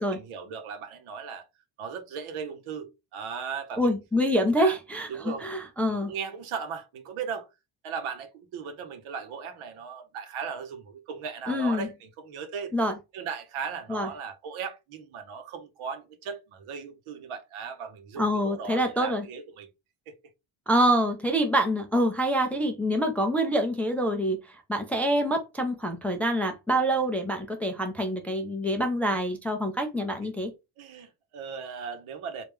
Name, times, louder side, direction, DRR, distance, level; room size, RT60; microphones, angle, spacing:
voice 1, 0.0-1.4 1.8-3.9 4.3-4.8 5.1-5.4 5.9-7.5 7.8-12.7 13.1-19.7 20.1-20.2 30.2-30.3 30.8-32.4, right 6 dB, 75° right, 1.0 m, -37 dB
voice 2, 3.8-6.1 11.5-11.9 12.7-13.0 13.9-14.1 18.2-19.3 20.7-30.5, equal, 5° left, 0.4 m, -26 dB
3.4 x 2.6 x 3.5 m
cardioid pair, 145°, 50 cm